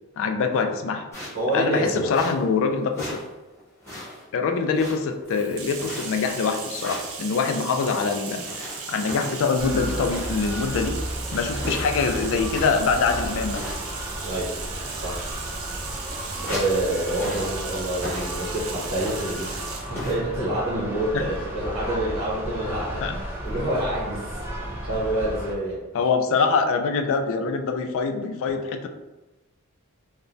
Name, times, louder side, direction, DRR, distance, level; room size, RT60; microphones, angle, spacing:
voice 1, 0.2-1.0 1.5-3.2 4.3-11.0 11.3-13.6 21.1-21.2 23.0-23.1 25.9-28.9, left 5 dB, 65° left, 5 dB, 0.3 m, -24 dB
sound 1, 1.1-1.5 2.1-2.6 2.9-3.3 3.6-4.3 4.7-5.3 5.8-6.3 6.7-7.1 8.4-10.5 10.8-10.9 11.3-13.0 13.5-14.1 14.3-14.6 15.3-15.4 15.6-16.8 17.1-17.6 17.9-18.6 19.0-19.4 19.9-20.1, left 1 dB, 10° left, 1.0 m, -37 dB
voice 2, 1.3-2.2 14.2-14.5 14.9-15.2 16.4-25.8, right 1 dB, 90° right, -8 dB, 0.9 m, -27 dB
Bathtub (filling or washing), 5.3-19.9, right 5 dB, 70° right, 0.5 m, -37 dB
sound 2, 9.6-25.5, equal, 10° right, 0.5 m, -33 dB
3.1 x 2.1 x 2.5 m, 1.1 s
head